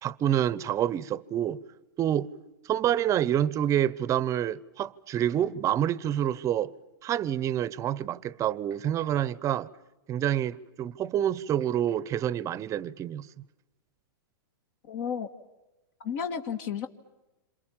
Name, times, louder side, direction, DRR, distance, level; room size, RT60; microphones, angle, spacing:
voice 1, 0.0-1.6 2.0-2.3 2.7-6.7 7.0-9.7 10.1-13.3, right 11 dB, 25° right, 0.9 m, -27 dB
voice 2, 14.9-15.3 16.0-16.9, left 7 dB, 50° left, 1.9 m, -32 dB
27.5 x 27.5 x 7.3 m
hypercardioid pair, 130°, 12 cm